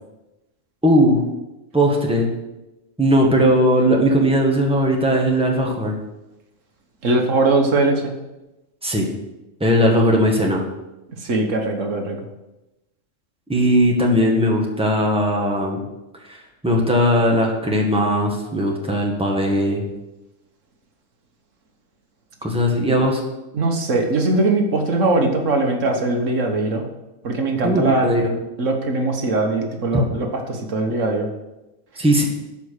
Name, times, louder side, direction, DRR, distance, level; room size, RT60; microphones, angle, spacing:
voice 1, 0.8-1.2 1.7-2.3 3.0-5.9 8.8-9.1 9.6-10.6 13.5-15.8 16.3-16.4 16.6-19.8 22.4-23.2 27.6-28.3 29.9-30.1 32.0-32.2, equal, 5° right, -1 dB, 1.7 m, -18 dB
voice 2, 7.0-8.1 11.2-12.2 23.5-26.8 27.2-28.1 28.6-31.3, right 2 dB, 75° right, 3 dB, 1.6 m, -20 dB
13.0 x 4.9 x 6.5 m, 0.99 s
omnidirectional pair, 1.3 m